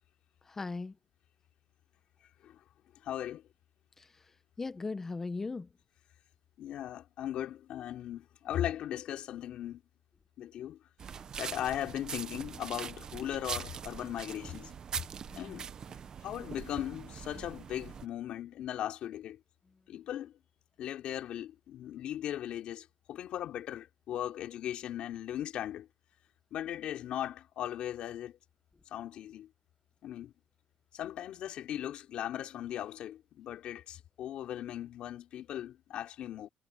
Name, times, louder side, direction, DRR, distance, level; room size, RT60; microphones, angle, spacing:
voice 1, 0.5-0.9 4.0-4.1 4.6-5.7 15.3-16.0, left 3 dB, 20° left, 1.1 m, -39 dB
voice 2, 3.0-3.4 6.6-9.8 10.4-10.8 11.4-14.7 15.4-15.7 16.2-19.4 19.9-20.3 20.8-25.9 26.5-28.3 28.9-29.5 30.0-30.3 30.9-36.5, left 11 dB, 55° left, 3.5 m, -38 dB
sound 1, 11.0-18.0, right 7 dB, 35° right, 1.0 m, -42 dB
cardioid pair, 130°, 2 cm